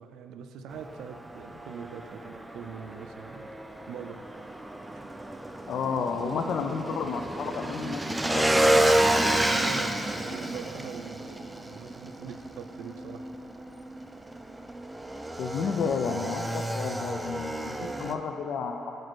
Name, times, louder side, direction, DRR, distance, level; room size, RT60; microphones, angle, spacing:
voice 1, 0.0-3.5 3.9-4.2 9.4-13.3 17.8-18.0, right 7 dB, 85° right, 8 dB, 0.3 m, -42 dB
Motorcycle / Engine, 0.7-18.1, right 1 dB, 10° right, 0.3 m, -30 dB
voice 2, 5.7-8.6 15.4-18.9, left 5 dB, 70° left, 3 dB, 0.3 m, -31 dB
5.1 x 4.4 x 6.0 m, 3.0 s
cardioid pair, 90°, 0 cm